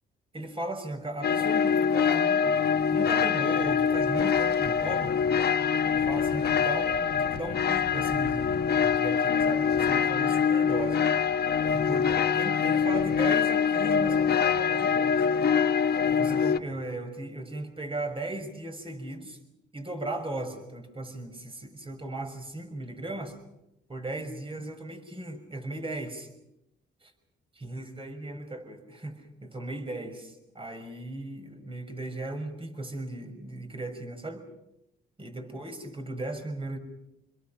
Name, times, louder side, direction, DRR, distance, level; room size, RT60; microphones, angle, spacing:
voice 1, 0.3-2.6 2.9-5.2 5.9-11.0 11.7-15.2 16.1-19.4 19.7-23.3 23.9-26.3 27.0-27.1 27.5-34.4 35.2-36.8, right 2 dB, 25° right, 6 dB, 6.1 m, -37 dB
sound 1, 1.2-16.6, left 7 dB, 55° left, 1.3 m, -24 dB
28.0 x 21.5 x 5.9 m, 0.85 s
cardioid pair, 90°, 20 cm